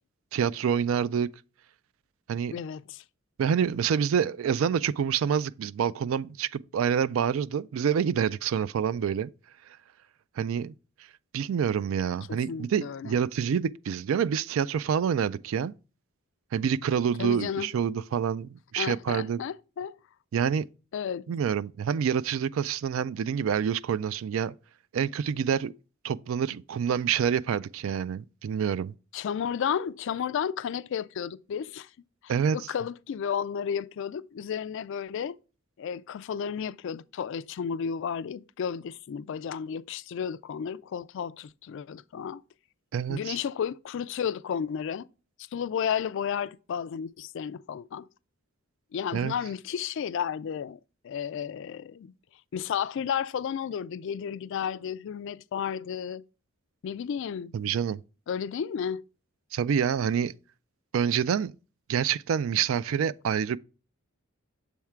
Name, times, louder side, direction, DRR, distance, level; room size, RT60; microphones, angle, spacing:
voice 1, 0.3-1.3 2.3-2.5 3.4-9.3 10.4-10.7 11.3-15.7 16.5-19.4 20.3-20.7 21.3-24.5 24.9-25.7 26.0-28.9 32.3-32.6 42.9-43.4 49.1-49.3 57.5-58.0 59.5-60.3 60.9-61.5 61.9-63.6, right 7 dB, 65° right, 0.3 m, -27 dB
voice 2, 2.5-3.0 12.3-13.2 17.2-17.7 18.8-20.0 20.9-21.3 29.1-31.9 32.2-35.4 35.8-42.4 43.1-45.1 45.5-48.1 48.9-50.8 51.0-52.1 52.5-56.2 56.8-57.5 58.3-59.0, left 7 dB, 60° left, 0.3 m, -32 dB
7.2 x 3.6 x 4.4 m
head